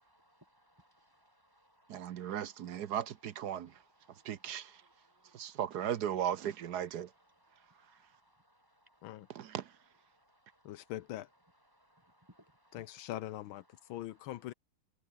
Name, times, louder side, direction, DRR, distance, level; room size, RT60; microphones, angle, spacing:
voice 1, 0.0-2.4 3.5-5.5 7.5-8.6 8.9-9.0 9.2-9.3 10.3-10.4 11.7-12.8, equal, 10° right, 4.5 m, -67 dB
voice 2, 1.9-3.7 4.2-4.7 5.3-7.1 9.3-9.6, right 10 dB, 60° right, 1.3 m, -36 dB
voice 3, 10.6-11.3 12.7-13.6 13.9-14.5, left 14 dB, 85° left, 1.6 m, -42 dB
omnidirectional pair, 2.2 m